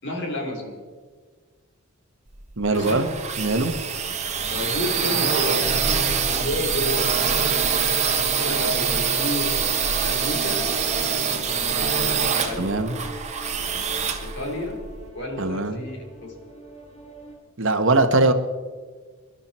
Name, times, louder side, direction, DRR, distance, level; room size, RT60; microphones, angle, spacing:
voice 1, 0.0-0.8 2.7-3.1 4.5-5.8 6.2-7.5 8.4-9.5 10.0-10.7 12.4-12.9 13.6-13.7 14.2-14.8 15.1-16.6, left 1 dB, 55° left, 0 dB, 3.9 m, -31 dB
sound 1, 2.3-15.1, right 6 dB, 30° right, 1.6 m, -24 dB
voice 2, 2.6-3.1 3.4-3.7 12.6-13.0 15.4-15.8 17.6-18.3, right 2 dB, 60° right, 7 dB, 1.3 m, -21 dB
sound 2, 6.8-17.3, equal, 30° left, 4.3 m, -43 dB
26.0 x 12.0 x 4.4 m, 1.5 s
head